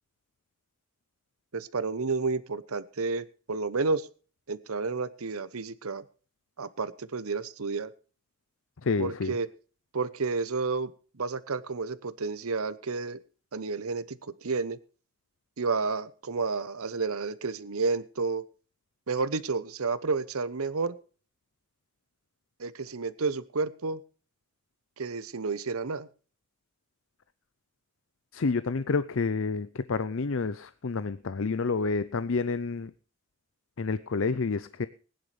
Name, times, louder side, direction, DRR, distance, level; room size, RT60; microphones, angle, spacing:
voice 1, 1.5-4.1 4.5-6.0 6.6-7.9 9.0-9.5 9.9-10.9 11.2-13.2 13.5-14.8 15.6-18.4 19.1-21.0 22.6-24.0 25.0-26.1, right 4 dB, 85° right, 15 dB, 0.9 m, -31 dB
voice 2, 8.8-9.4 28.3-32.9 33.8-34.9, left 4 dB, 65° left, 15 dB, 0.6 m, -29 dB
20.0 x 10.5 x 3.3 m, 0.38 s
head